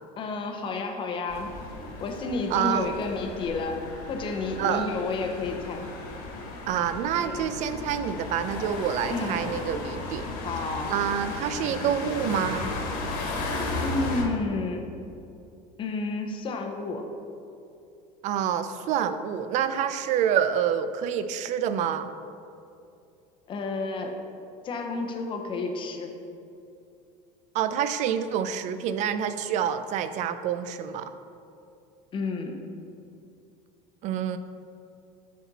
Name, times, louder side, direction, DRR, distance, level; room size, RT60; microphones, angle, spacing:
voice 1, 0.2-1.6 2.0-3.8 4.1-5.9 7.2-7.5 9.1-9.4 10.4-10.9 13.8-14.9 15.8-17.0 23.5-24.2 24.6-26.2 32.1-32.6, left 3 dB, 30° left, 4 dB, 0.7 m, -31 dB
sound 1, 1.3-14.2, left 2 dB, 60° left, 1.4 m, -35 dB
voice 2, 2.5-2.9 4.6-4.9 6.7-10.3 10.9-12.7 18.2-22.1 27.5-31.1 34.0-34.4, right 9 dB, 50° right, 11 dB, 0.4 m, -27 dB
8.4 x 4.2 x 4.0 m, 2.6 s
cardioid pair, 140°, 16 cm